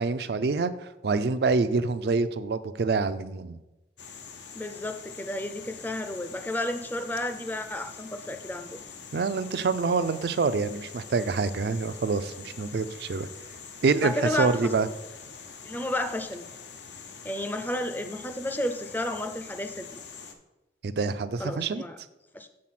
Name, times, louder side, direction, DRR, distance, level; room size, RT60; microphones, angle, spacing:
voice 1, 0.0-3.6 9.1-13.3 13.8-14.9 20.8-21.8, right 4 dB, 65° right, 12 dB, 0.4 m, -26 dB
sound 1, 4.0-20.3, left 6 dB, 85° left, 0.8 m, -45 dB
voice 2, 4.5-8.8 14.0-14.7 15.6-16.4 17.2-19.9 21.4-22.0 22.3-22.5, left 1 dB, 10° left, 8 dB, 0.4 m, -32 dB
7.6 x 3.9 x 5.9 m, 1.0 s
head